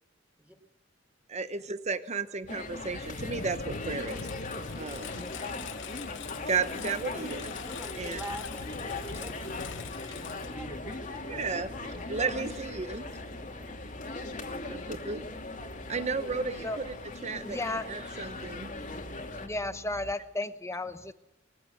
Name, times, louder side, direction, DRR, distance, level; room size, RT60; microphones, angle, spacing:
voice 1, 1.3-4.3 4.8-5.2 6.5-7.5 8.0-8.2 11.3-13.1 14.6-15.2 15.9-16.9 17.2-18.7, right 4 dB, 35° right, 11 dB, 0.9 m, -34 dB
Engine, 2.4-11.2, left 6 dB, 70° left, 0.8 m, -43 dB
sound 1, 2.5-19.5, left 2 dB, 40° left, 2.7 m, -40 dB
sound 2, 2.6-20.1, equal, 70° right, 2.9 m, -49 dB
voice 2, 5.2-5.8 12.2-12.4 14.9-15.0 16.6-16.8 17.4-17.9 19.4-21.1, left 2 dB, 15° left, 10 dB, 1.0 m, -35 dB
voice 3, 7.0-7.4 7.7-9.9 10.5-12.0 12.5-12.9, equal, 5° right, 4 dB, 3.9 m, -47 dB
22.5 x 15.5 x 7.9 m, 0.87 s
head